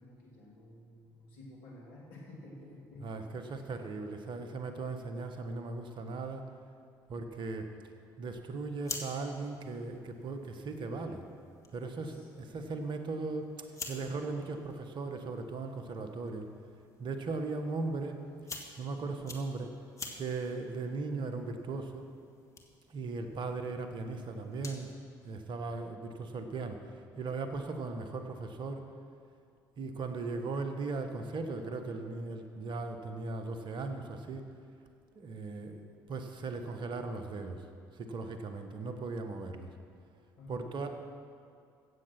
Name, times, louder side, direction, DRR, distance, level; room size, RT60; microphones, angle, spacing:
voice 1, 0.0-3.6 12.0-12.6 40.4-40.9, left 1 dB, 75° left, -3 dB, 3.0 m, -51 dB
voice 2, 3.0-6.4 7.1-7.7 8.2-11.2 11.7-16.5 17.0-18.2 18.8-19.7 20.1-22.1 22.9-24.9 25.2-26.8 27.2-28.9 29.8-34.5 35.1-37.6 38.0-39.7 40.5-40.9, right 3 dB, 50° right, 6 dB, 1.4 m, -38 dB
sound 1, 8.5-25.0, left 3 dB, 30° left, 1.8 m, -50 dB
16.5 x 7.6 x 6.0 m, 2.3 s
hypercardioid pair, 55°, 10 cm